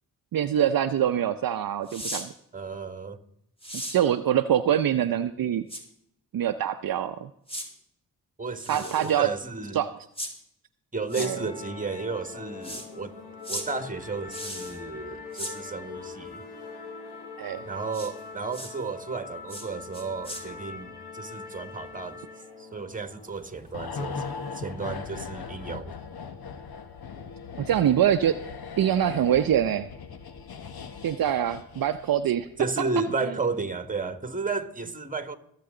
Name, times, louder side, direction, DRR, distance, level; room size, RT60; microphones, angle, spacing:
voice 1, 0.3-2.3 3.9-5.7 6.3-7.3 8.7-9.3 9.7-9.9 11.2-11.4 17.4-17.6 27.6-28.4 28.8-29.9 31.0-32.5, right 10 dB, 60° right, 0.7 m, -24 dB
sound 1, 1.9-2.3 3.6-4.0 5.7-5.8 7.5-7.7 8.6-9.2 10.2-10.3 11.1-11.3 12.6-12.9 13.4-13.7 14.3-14.8 15.3-15.5 17.9-18.1 18.5-18.7 19.5-19.7 19.9-20.4, equal, 15° left, 3.3 m, -36 dB
voice 2, 2.5-3.2 8.4-9.8 10.9-13.1 13.5-16.4 17.6-22.2 22.6-24.2 24.5-25.9 32.6-35.4, right 4 dB, 20° right, 1.6 m, -33 dB
sound 2, 11.1-25.7, left 4 dB, 80° left, 2.9 m, -43 dB
sound 3, 23.7-32.3 32.5-32.7, left 5 dB, 65° left, 1.4 m, -39 dB
21.0 x 7.7 x 3.8 m
supercardioid pair, 40°, 40 cm